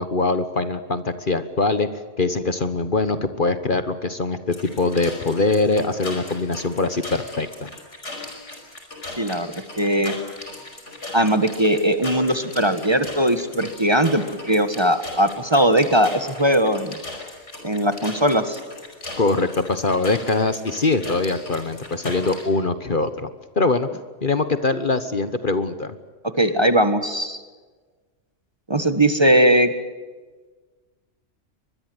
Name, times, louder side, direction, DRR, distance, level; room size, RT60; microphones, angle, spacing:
voice 1, 0.0-1.9 2.2-7.7 19.2-23.3 23.6-23.9 24.2-25.9, left 3 dB, 45° left, 11 dB, 1.4 m, -22 dB
sound 1, 4.5-22.5, left 2 dB, 70° left, 5.6 m, -38 dB
voice 2, 9.2-10.1 11.1-16.9 17.6-18.6 26.4-27.4 28.7-29.7, right 1 dB, 20° right, 10 dB, 1.6 m, -19 dB
24.0 x 21.5 x 8.0 m, 1.4 s
omnidirectional pair, 1.3 m